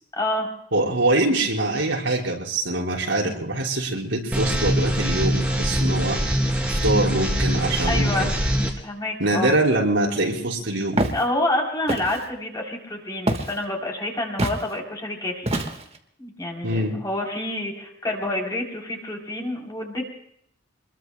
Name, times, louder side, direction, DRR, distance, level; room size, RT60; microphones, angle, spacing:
voice 1, 0.2-0.5 7.8-8.3 8.8-9.5 11.1-15.5 16.2-20.0, left 1 dB, 20° left, 0 dB, 3.4 m, -28 dB
voice 2, 0.7-6.2 6.7-8.3 9.2-11.1 16.6-16.9, right 2 dB, 85° right, -2 dB, 4.9 m, -24 dB
sound 1, 4.3-8.7, equal, 5° right, 2.8 m, -23 dB
Walk footsteps, 11.0-11.2 11.9-12.3 13.3-13.6 14.4-14.6 15.5-16.0, right 1 dB, 30° right, 1.5 m, -25 dB
27.5 x 21.5 x 2.2 m, 0.73 s
head